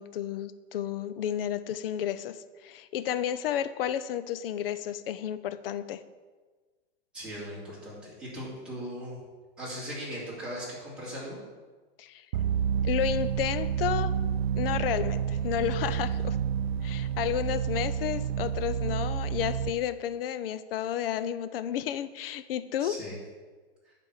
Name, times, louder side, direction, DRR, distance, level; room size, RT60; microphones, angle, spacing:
voice 1, 0.0-6.0 12.0-12.3 12.8-14.1 14.5-16.4 16.8-23.0, left 10 dB, 65° left, 13 dB, 0.6 m, -32 dB
voice 2, 7.1-9.2 9.6-11.4 22.8-23.2 23.8-23.9, equal, 5° right, -9 dB, 2.7 m, -39 dB
sound 1, 12.3-19.7, right 8 dB, 90° right, 0.5 m, -29 dB
9.5 x 4.3 x 6.5 m, 1.4 s
supercardioid pair, 165°, 30 cm